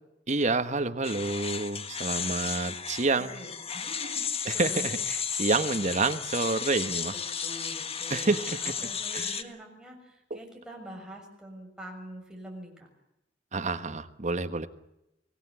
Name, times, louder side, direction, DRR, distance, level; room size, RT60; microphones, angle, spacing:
voice 1, 0.3-3.3 4.5-7.1 8.1-8.7 9.1-9.3 10.3-10.4 13.5-14.7, right 3 dB, 40° right, 10 dB, 1.4 m, -28 dB
sound 1, 1.0-9.4, left 7 dB, 35° left, 1.4 m, -34 dB
voice 2, 2.0-2.5 3.2-4.9 7.4-12.9, right 1 dB, 5° right, 1 dB, 6.4 m, -45 dB
25.0 x 18.0 x 8.3 m, 0.88 s
head